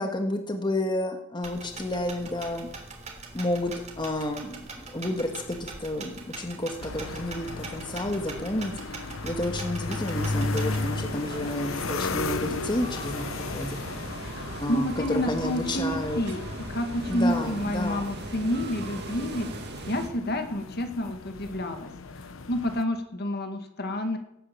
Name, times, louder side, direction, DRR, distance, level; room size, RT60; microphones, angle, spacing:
voice 1, 0.0-2.7 3.3-9.0 9.2-13.8 14.6-16.2 17.1-18.1, left 1 dB, 25° left, 4 dB, 1.6 m, -31 dB
sound 1, 1.4-10.9, right 3 dB, 35° right, 3.2 m, -42 dB
sound 2, 6.8-22.8, left 3 dB, 75° left, 1.0 m, -35 dB
sound 3, 10.1-20.1, right 1 dB, 55° right, 2.3 m, -39 dB
voice 2, 14.2-19.5 19.9-21.9 22.5-24.2, left 1 dB, 50° left, 6 dB, 2.1 m, -29 dB
18.0 x 9.9 x 7.7 m, 0.81 s
head